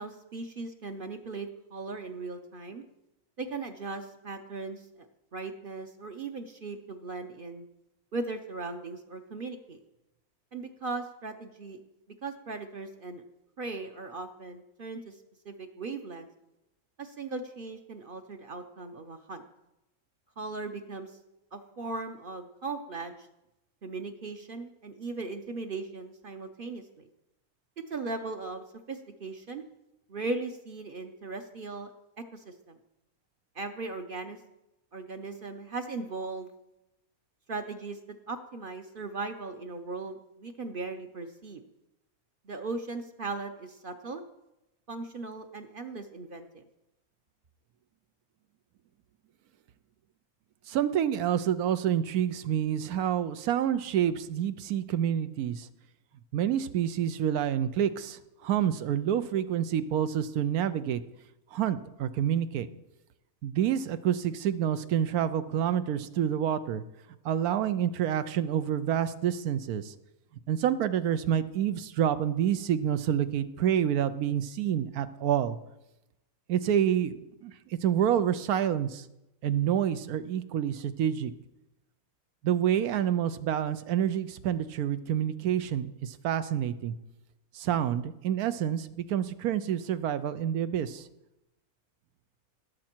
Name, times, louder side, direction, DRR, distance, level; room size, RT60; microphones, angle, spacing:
voice 1, 0.0-2.8 3.4-5.1 5.3-7.7 8.1-9.8 10.5-11.8 12.2-13.2 13.6-15.2 15.4-16.3 17.0-19.4 20.4-21.1 21.5-23.2 23.8-27.1 27.9-29.6 30.1-31.9 32.3-32.8 33.5-34.4 34.9-36.5 37.5-38.0 38.3-41.6 42.4-44.2 44.9-46.6, right 3 dB, 45° right, 6 dB, 0.8 m, -38 dB
voice 2, 50.7-55.7 56.3-61.0 61.5-62.7 63.4-66.8 67.2-69.9 70.5-75.6 76.5-77.5 77.8-79.0 79.4-81.3 82.4-86.9 87.5-91.0, right 10 dB, 85° right, 12 dB, 1.2 m, -28 dB
17.0 x 7.4 x 4.5 m, 0.91 s
omnidirectional pair, 1.6 m